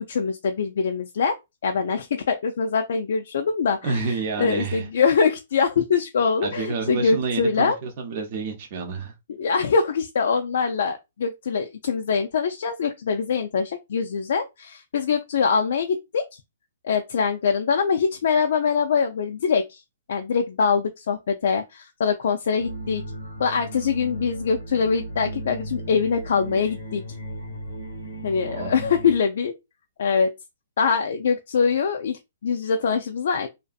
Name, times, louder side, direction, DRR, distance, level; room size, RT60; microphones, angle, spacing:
voice 1, 0.1-1.4 1.6-7.8 9.4-16.4 16.8-19.8 20.1-23.0 23.4-27.0 28.2-29.5 30.0-30.3 30.8-33.5, left 5 dB, 70° left, 0.3 m, -23 dB
voice 2, 3.8-4.9 6.4-9.1 28.5-28.7, right 4 dB, 45° right, 0.6 m, -29 dB
sound 1, 22.6-29.2, right 1 dB, 85° left, 0.7 m, -35 dB
2.6 x 2.4 x 2.3 m
hypercardioid pair, 135°, 0 cm